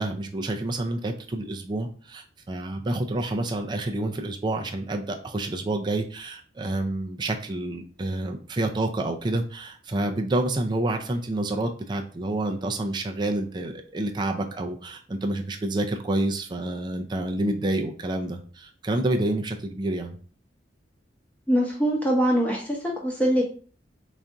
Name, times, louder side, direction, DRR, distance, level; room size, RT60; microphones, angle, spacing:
voice 1, 0.0-20.2, right 2 dB, 25° right, 3 dB, 0.4 m, -28 dB
voice 2, 21.5-23.4, equal, 10° left, -2 dB, 0.9 m, -23 dB
4.1 x 2.5 x 3.4 m, 0.42 s
head